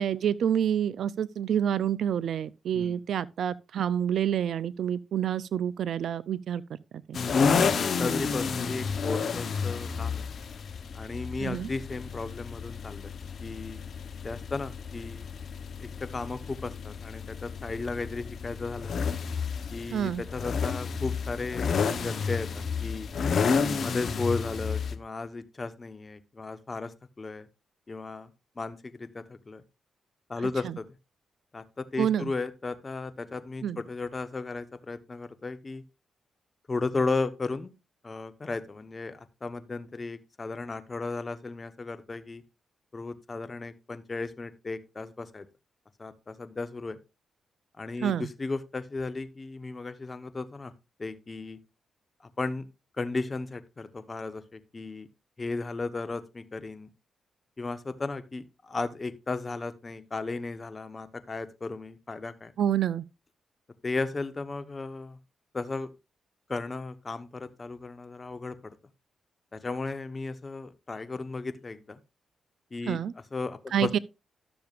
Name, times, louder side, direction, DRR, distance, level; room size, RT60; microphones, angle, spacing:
voice 1, 0.0-6.6 7.1-7.2 11.4-11.7 19.9-20.2 32.0-32.3 33.6-33.8 48.0-48.3 62.6-63.0 72.9-73.1 73.7-74.0, right 9 dB, 70° right, 0.5 m, -28 dB
sound 1, 7.1-24.9, left 5 dB, 60° left, 0.9 m, -31 dB
voice 2, 7.5-10.3 10.9-13.1 13.4-13.8 14.2-15.3 15.8-18.9 19.7-23.1 23.8-27.5 27.9-28.3 28.6-29.6 30.3-30.9 31.5-35.8 36.7-37.7 38.0-42.4 42.9-45.5 46.0-47.0 47.8-50.7 51.0-51.6 52.4-52.7 53.0-55.1 55.4-56.9 57.6-62.5 63.8-65.2 65.5-65.9 66.5-68.8 69.5-72.0 72.7-73.0 73.3-74.0, left 3 dB, 35° left, 1.1 m, -35 dB
12.5 x 6.9 x 2.5 m
supercardioid pair, 55°, 0 cm